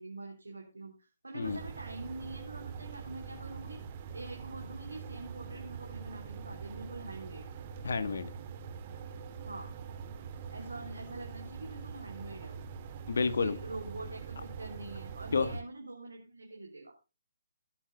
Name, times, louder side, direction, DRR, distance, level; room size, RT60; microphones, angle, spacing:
voice 1, 0.0-3.8 4.1-7.5 9.4-9.7 10.5-12.7 13.3-17.0, right 2 dB, 75° right, 1 dB, 3.5 m, -45 dB
sound 1, 1.4-15.6, right 6 dB, 35° right, 2.1 m, -44 dB
voice 2, 7.8-8.3 13.1-13.5 15.3-15.5, left 4 dB, 60° left, 13 dB, 1.5 m, -29 dB
16.5 x 10.5 x 2.3 m, 0.29 s
figure-of-eight pair, 135°, 0 cm